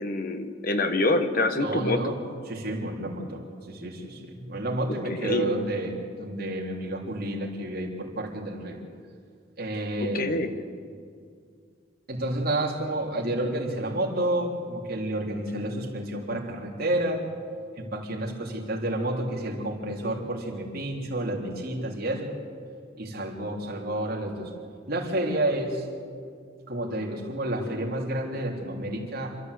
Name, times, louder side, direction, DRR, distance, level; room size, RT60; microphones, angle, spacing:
voice 1, 0.0-2.0 5.0-5.5 10.0-10.5, left 2 dB, 50° left, 8 dB, 1.4 m, -26 dB
voice 2, 1.6-2.2 2.5-8.8 9.6-10.4 12.1-17.2 17.8-22.3 23.0-24.5 24.9-25.9 26.7-29.4, right 1 dB, 55° right, -1 dB, 3.4 m, -30 dB
27.5 x 13.0 x 8.2 m, 2.2 s
head